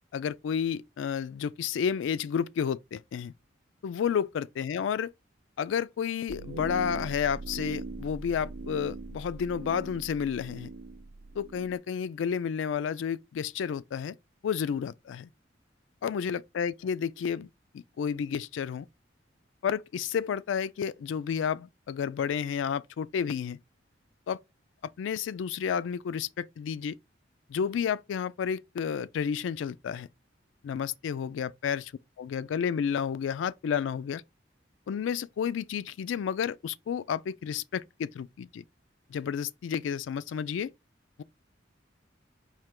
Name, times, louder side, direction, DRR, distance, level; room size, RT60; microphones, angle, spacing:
voice 1, 0.1-3.3 3.8-5.1 5.6-10.7 11.4-14.2 14.4-15.3 16.0-17.5 17.7-18.9 19.6-23.6 24.3-24.4 25.0-27.0 27.5-30.1 30.6-31.9 32.2-34.2 34.9-38.6 39.1-40.7, left 7 dB, 80° left, 0.3 m, -31 dB
sound 1, 6.3-11.8, right 3 dB, 85° right, 0.5 m, -41 dB
4.3 x 2.9 x 3.6 m
head